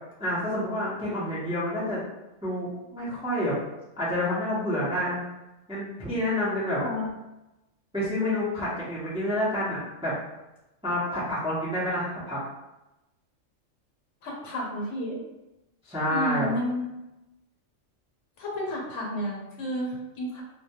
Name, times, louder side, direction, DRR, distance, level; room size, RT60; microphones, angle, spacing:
voice 1, 0.2-2.0 2.4-3.6 4.0-5.2 5.7-6.8 7.9-10.1 10.8-12.4 15.8-16.5, left 1 dB, 5° right, -9 dB, 0.4 m, -28 dB
voice 2, 6.8-7.1 14.2-15.2 16.1-16.9 18.4-20.4, left 1 dB, 75° left, -2 dB, 1.0 m, -31 dB
2.2 x 2.2 x 2.8 m, 0.97 s
omnidirectional pair, 1.3 m